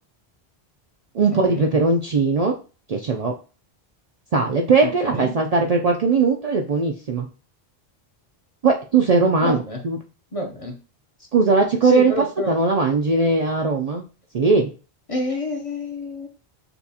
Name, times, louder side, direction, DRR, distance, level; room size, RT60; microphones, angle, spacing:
voice 1, 1.1-2.6 2.9-3.3 4.3-7.3 8.6-10.0 11.3-14.0 14.3-14.7, right 4 dB, 50° right, 1 dB, 0.5 m, -19 dB
voice 2, 4.8-5.4 9.4-9.8 10.3-10.8 11.8-12.6 15.1-16.3, left 1 dB, 40° left, 2 dB, 0.8 m, -28 dB
6.8 x 2.3 x 2.7 m, 0.34 s
omnidirectional pair, 1.0 m